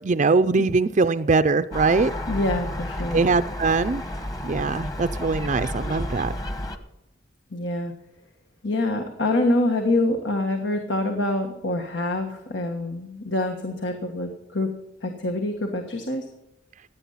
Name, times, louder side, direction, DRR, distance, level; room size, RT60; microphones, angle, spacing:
voice 1, 0.0-2.1 3.1-4.0 4.4-6.3, right 4 dB, 40° right, 10 dB, 0.5 m, -22 dB
Gull seagull, 1.7-6.8, left 1 dB, 20° left, 1.3 m, -31 dB
voice 2, 2.3-3.2 7.5-7.9 8.6-14.7 15.0-16.3, left 2 dB, 80° left, 4 dB, 1.6 m, -25 dB
16.5 x 9.8 x 5.7 m, 0.87 s
head